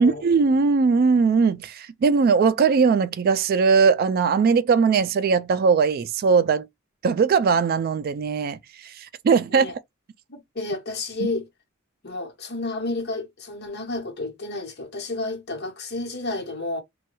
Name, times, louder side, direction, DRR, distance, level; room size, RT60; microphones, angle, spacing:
voice 1, 0.0-6.7 7.0-8.6 8.8-8.9 9.2-9.7, right 5 dB, 50° right, 0.3 m, -19 dB
voice 2, 10.3-11.5 12.0-16.8, left 2 dB, 55° left, 1.0 m, -31 dB
3.1 x 2.3 x 2.9 m
head